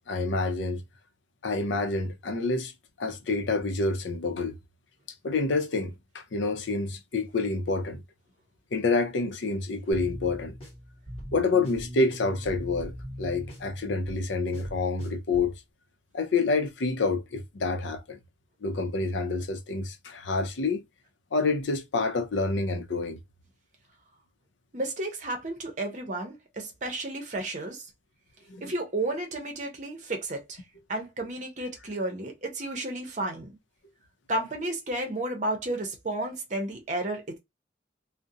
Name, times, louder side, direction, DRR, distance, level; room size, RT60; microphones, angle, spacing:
voice 1, 0.1-0.8 1.4-2.7 3.0-4.5 5.2-8.0 8.7-10.5 11.3-15.5 16.1-18.2 18.6-20.8 21.3-23.2 28.5-28.6, left 3 dB, 85° left, 0.5 m, -28 dB
sound 1, 9.9-15.6, equal, 30° left, 1.0 m, -41 dB
voice 2, 24.7-27.9 28.6-30.6 30.9-33.6 34.3-37.4, right 2 dB, 40° right, 0.7 m, -32 dB
2.5 x 2.1 x 2.6 m
head